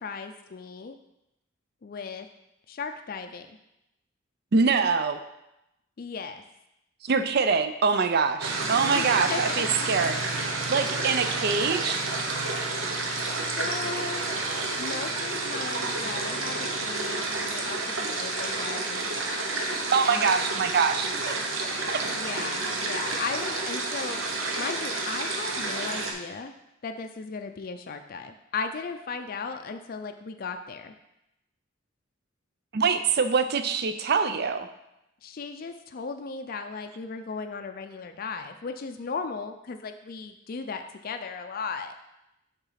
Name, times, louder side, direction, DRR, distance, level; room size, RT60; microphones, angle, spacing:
voice 1, 0.0-1.0 1.8-2.3 2.7-3.5 6.0-6.4 8.9-9.6 11.0-11.3 13.6-14.3 14.7-19.4 20.1-20.6 22.1-24.2 24.6-26.5 26.8-30.9 35.2-41.9, left 5 dB, 45° left, 6 dB, 0.4 m, -36 dB
voice 2, 4.5-5.2 7.0-10.2 10.7-12.0 19.9-21.4 21.9-22.0 32.7-34.7, right 5 dB, 55° right, 10 dB, 0.5 m, -24 dB
sound 1, 8.4-26.1, right 3 dB, 80° right, 1.0 m, -30 dB
6.9 x 3.7 x 5.7 m, 0.88 s
head